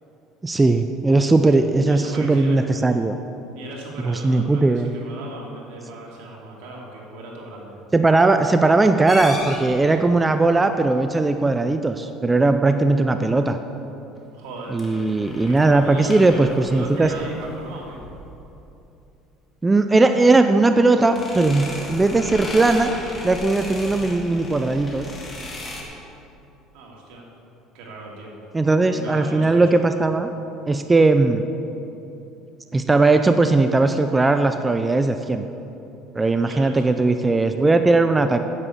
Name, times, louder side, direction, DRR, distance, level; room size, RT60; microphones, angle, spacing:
voice 1, 0.4-3.2 4.0-4.9 7.9-13.6 14.7-17.1 19.6-22.9 23.2-25.1 28.5-30.3 30.7-31.5 32.7-35.4 36.1-38.4, right 3 dB, 15° right, 8 dB, 0.4 m, -18 dB
voice 2, 1.3-2.6 3.5-7.8 14.3-14.8 15.4-18.0 26.7-27.3 27.7-28.4 28.8-29.7 36.4-36.9, right 2 dB, 80° right, -2 dB, 2.6 m, -38 dB
sound 1, 9.1-10.0 14.6-18.4 21.0-25.8, left 1 dB, 20° left, 1.9 m, -36 dB
9.7 x 7.9 x 7.0 m, 2.9 s
cardioid pair, 130°, 0 cm